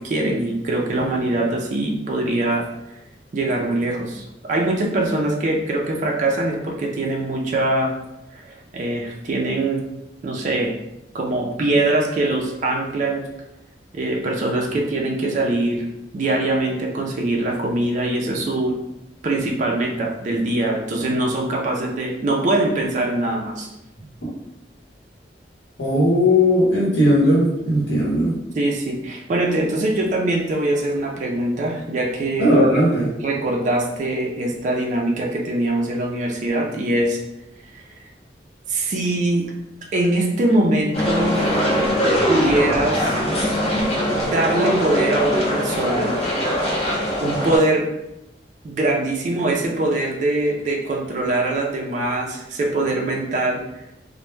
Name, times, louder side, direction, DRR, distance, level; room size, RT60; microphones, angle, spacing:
voice 1, 0.0-2.6 3.3-7.9 8.3-9.8 10.2-10.7 11.1-13.2 13.9-15.9 16.1-18.8 19.2-23.7 28.5-32.8 33.2-37.2 37.7-37.8 38.7-39.5 39.9-41.7 42.2-43.2 44.1-46.1 47.2-47.9 48.6-53.6, right 2 dB, 45° right, 0 dB, 0.3 m, -22 dB
voice 2, 25.8-28.3 32.4-33.1, left 1 dB, 70° left, -5 dB, 0.8 m, -17 dB
sound 1, 40.9-47.6, equal, 35° left, 0.7 m, -21 dB
2.1 x 2.0 x 3.0 m, 0.90 s
head